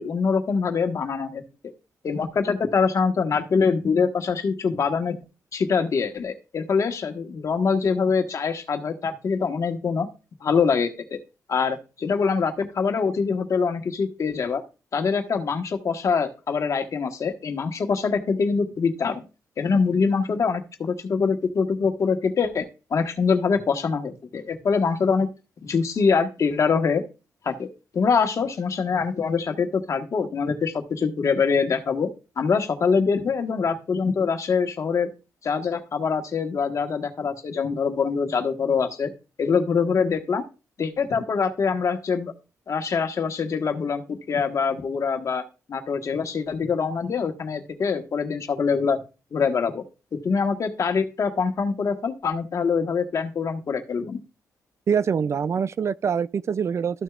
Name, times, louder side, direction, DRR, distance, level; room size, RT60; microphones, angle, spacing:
voice 1, 0.0-1.4 2.0-5.2 5.5-10.1 10.4-11.2 11.5-14.6 14.9-19.2 19.6-25.3 25.6-27.0 27.4-27.7 27.9-32.1 32.4-35.1 35.4-39.1 39.4-40.4 40.8-42.3 42.7-45.4 45.7-49.0 49.3-49.8 50.1-54.2, left 5 dB, 55° left, 1.4 m, -24 dB
voice 2, 54.9-57.0, right 6 dB, 45° right, 0.3 m, -24 dB
13.5 x 6.4 x 2.4 m
cardioid pair, 85°, 6 cm